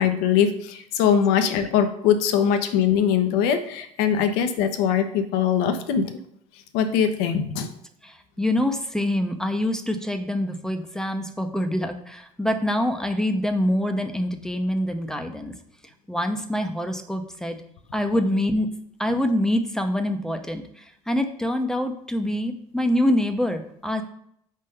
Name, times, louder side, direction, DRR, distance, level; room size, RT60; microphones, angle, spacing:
voice 1, 0.0-6.1 6.7-7.7, left 8 dB, 60° left, 8 dB, 0.8 m, -22 dB
voice 2, 8.0-15.5 16.1-17.6 17.9-18.7 19.0-24.0, left 1 dB, 5° left, 6 dB, 0.8 m, -25 dB
5.2 x 3.7 x 5.5 m, 0.70 s
figure-of-eight pair, 60°, 19 cm